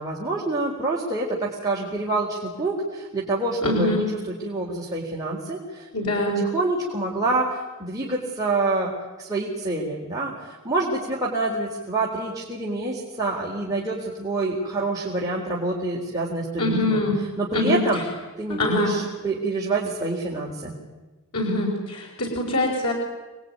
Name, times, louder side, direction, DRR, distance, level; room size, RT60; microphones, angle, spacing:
voice 1, 0.0-4.0 4.4-5.9 6.4-8.9 9.2-17.0 17.4-18.0 18.4-20.8, right 2 dB, 15° right, -4 dB, 3.9 m, -27 dB
voice 2, 3.6-4.0 5.9-6.4 16.6-17.2 17.5-18.0 18.5-18.9 21.3-22.9, left 1 dB, 80° left, -1 dB, 4.9 m, -24 dB
27.5 x 21.0 x 9.5 m, 1.2 s
head